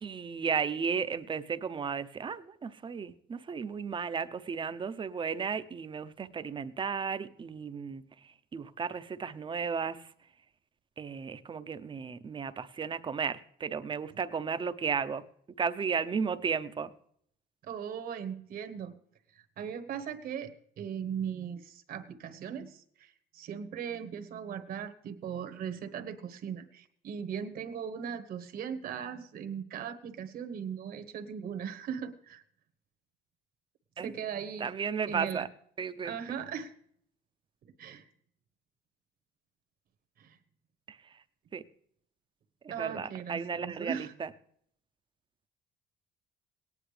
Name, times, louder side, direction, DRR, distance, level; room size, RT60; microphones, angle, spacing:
voice 1, 0.0-8.0 8.5-10.0 11.0-15.2 15.6-16.9 34.0-34.1 34.6-35.5 35.8-36.1 40.9-41.0 41.5-41.6 42.6-44.3, right 6 dB, 30° right, 11 dB, 0.7 m, -34 dB
voice 2, 17.6-18.9 19.6-32.4 34.0-34.7 35.1-35.5 36.0-36.7 37.8-38.1 40.2-40.4 42.7-44.1, right 8 dB, 60° right, 8 dB, 1.2 m, -38 dB
18.0 x 10.0 x 3.3 m, 0.65 s
cardioid pair, 110°, 17 cm